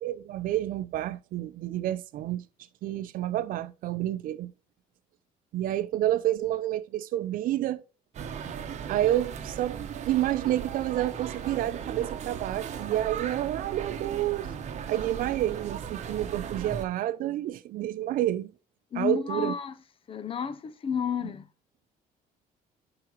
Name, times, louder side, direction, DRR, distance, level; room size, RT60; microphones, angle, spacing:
voice 1, 0.0-2.4 2.8-4.5 5.5-7.8 8.9-9.8 10.1-14.5 14.9-18.5 19.0-19.5, right 13 dB, 65° right, 0.6 m, -29 dB
sound 1, 8.1-16.9, right 7 dB, 50° right, 1.0 m, -37 dB
voice 2, 18.9-19.7 20.1-21.5, left 7 dB, 35° left, 0.6 m, -31 dB
11.0 x 4.8 x 3.0 m
cardioid pair, 110°, 15 cm